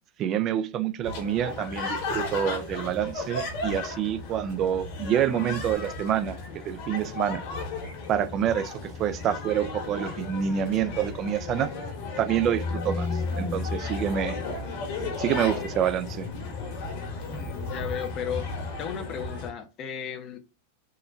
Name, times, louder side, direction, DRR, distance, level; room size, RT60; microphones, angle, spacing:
voice 1, 0.2-6.4 6.6-7.4 8.1-11.7 12.2-13.1 13.4-14.4 15.2-16.3, right 9 dB, 40° right, 0.3 m, -27 dB
sound 1, 1.0-19.5, left 3 dB, 55° left, 1.2 m, -34 dB
voice 2, 17.3-18.5 18.8-20.4, left 8 dB, 40° left, 0.6 m, -34 dB
3.7 x 2.1 x 2.5 m
hypercardioid pair, 100°, 0 cm